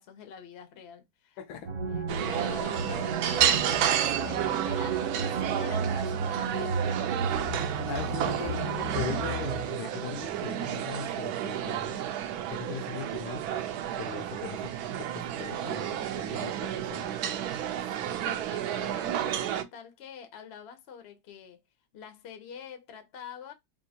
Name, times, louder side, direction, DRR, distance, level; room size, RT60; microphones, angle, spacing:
voice 1, 0.0-1.4 2.3-7.3 18.0-21.6 21.9-23.5, left 7 dB, 65° left, 0.6 m, -46 dB
voice 2, 1.4-1.7 7.9-12.0 12.6-13.6 14.0-17.1, left 7 dB, 85° left, 1.4 m, -39 dB
sound 1, 1.7-9.6, right 4 dB, 55° right, 1.2 m, -33 dB
sound 2, 2.1-19.6, right 10 dB, 80° right, 0.8 m, -31 dB
3.6 x 2.5 x 2.7 m
omnidirectional pair, 2.1 m